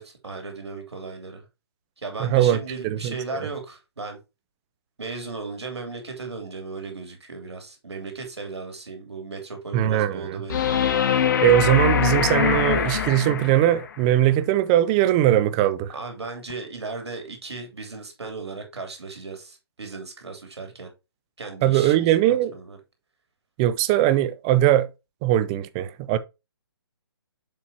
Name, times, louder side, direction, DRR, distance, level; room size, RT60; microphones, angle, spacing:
voice 1, 0.0-1.4 2.0-4.2 5.0-10.7 15.9-20.9 21.4-22.8, right 3 dB, 80° right, 3.2 m, -36 dB
voice 2, 2.2-2.6 2.8-3.1 9.7-10.4 11.4-15.9 21.6-22.5 23.6-24.9 25.2-26.2, right 13 dB, 15° right, 0.4 m, -20 dB
sound 1, 10.5-13.8 16.5-16.6, left 8 dB, 45° left, 1.2 m, -23 dB
7.3 x 6.0 x 2.8 m
hypercardioid pair, 150°, 14 cm